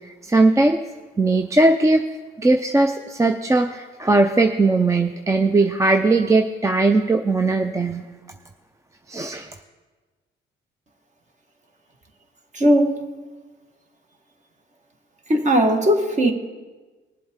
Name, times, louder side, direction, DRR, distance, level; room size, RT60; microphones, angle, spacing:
voice 1, 0.2-0.8 1.2-2.0 2.4-8.0 9.1-9.5, right 2 dB, 15° right, 6 dB, 0.5 m, -19 dB
voice 2, 12.5-13.0 15.3-16.3, equal, 35° right, 4 dB, 1.6 m, -18 dB
19.5 x 7.7 x 3.6 m, 1.3 s
cardioid pair, 90°, 20 cm